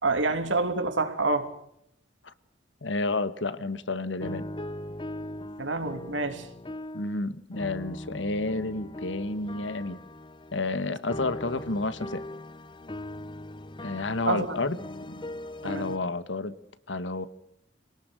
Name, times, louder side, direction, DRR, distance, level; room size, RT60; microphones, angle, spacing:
voice 1, 0.0-1.5 5.6-6.5 14.3-14.6 15.6-15.9, right 3 dB, 85° right, 3.2 m, -27 dB
voice 2, 2.8-4.5 6.9-10.0 10.5-12.3 13.8-14.8 15.1-15.4 15.6-16.5 16.9-17.3, left 2 dB, 80° left, 1.5 m, -30 dB
sound 1, 4.2-7.2 7.5-16.0, left 1 dB, 25° left, 0.9 m, -40 dB
27.0 x 18.5 x 6.5 m
head